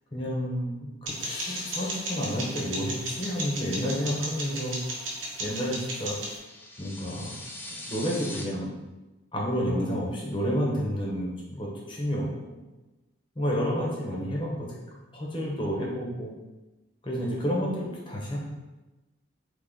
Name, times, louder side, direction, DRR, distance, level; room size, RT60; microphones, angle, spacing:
voice 1, 0.1-0.9 1.3-4.8 5.4-6.2 6.8-7.3 7.8-8.7 9.3-12.6 13.4-16.3 17.0-18.4, equal, 25° left, -3 dB, 0.9 m, -30 dB
sound 1, 1.1-6.4, right 1 dB, 90° right, 1.1 m, -35 dB
sound 2, 1.2-4.7, left 4 dB, 80° left, 0.7 m, -45 dB
sound 3, 6.3-8.4, left 1 dB, 10° left, 0.4 m, -41 dB
3.8 x 3.3 x 3.5 m, 1.1 s
head